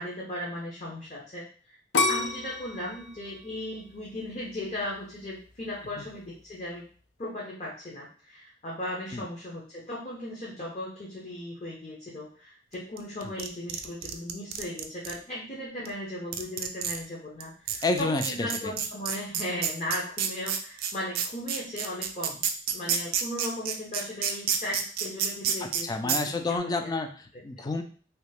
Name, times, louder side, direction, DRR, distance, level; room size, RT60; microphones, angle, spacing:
voice 1, 0.0-1.8 2.1-6.9 7.2-22.5 22.7-26.1 26.4-26.9, left 1 dB, 40° left, -4 dB, 0.7 m, -37 dB
sound 1, 1.9-4.9 5.4-5.9, left 3 dB, 90° left, 0.5 m, -30 dB
sound 2, 13.0-15.1 15.9-16.0 16.3-17.0 17.4-17.5 17.7-25.8 26.1-26.2, right 8 dB, 55° right, 0.4 m, -28 dB
voice 2, 17.8-18.7 25.8-27.8, left 3 dB, 20° left, 6 dB, 0.3 m, -30 dB
2.9 x 2.4 x 3.4 m, 0.42 s
head